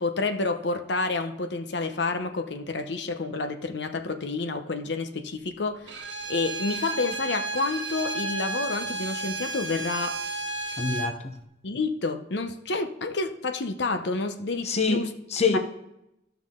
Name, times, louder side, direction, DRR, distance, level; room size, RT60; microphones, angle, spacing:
voice 1, 0.0-5.9 6.3-10.2 11.6-15.1 15.5-15.6, left 3 dB, 65° left, 0.8 m, -29 dB
Bowed string instrument, 5.9-11.2, right 3 dB, 85° right, 1.2 m, -32 dB
voice 2, 10.8-11.3 14.6-15.6, left 4 dB, 35° left, 0.9 m, -26 dB
14.0 x 5.8 x 3.7 m
head